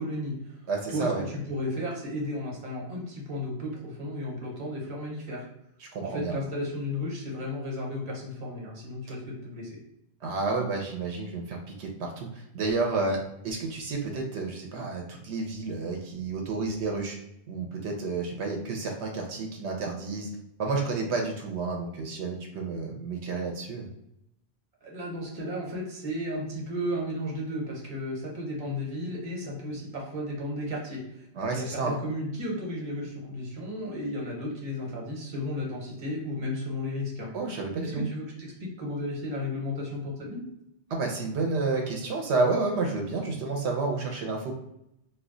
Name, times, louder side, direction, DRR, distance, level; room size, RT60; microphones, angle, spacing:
voice 1, 0.0-0.6 0.9-5.5 6.0-9.8 24.8-31.3 31.5-37.3 37.8-40.5, left 1 dB, 40° right, -2 dB, 0.9 m, -34 dB
voice 2, 0.7-1.2 5.8-6.4 10.2-17.2 17.5-20.3 20.6-23.9 31.4-32.0 37.3-38.1 40.9-44.5, right 3 dB, 85° right, 1 dB, 0.9 m, -30 dB
2.3 x 2.2 x 3.6 m, 0.81 s
omnidirectional pair, 1.1 m